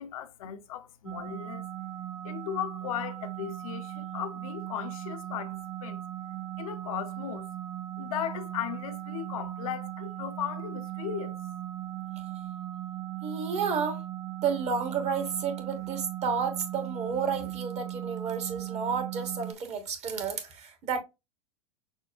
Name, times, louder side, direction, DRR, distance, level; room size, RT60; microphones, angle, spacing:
voice 1, 0.0-1.7 2.2-6.0 6.6-7.5 8.0-11.4, left 10 dB, 70° left, 0.6 m, -37 dB
sound 1, 1.1-19.5, right 13 dB, 10° right, 0.5 m, -38 dB
voice 2, 13.2-14.0 14.4-21.0, right 6 dB, 40° right, 1.2 m, -31 dB
6.2 x 2.1 x 2.4 m
hypercardioid pair, 100°, 18 cm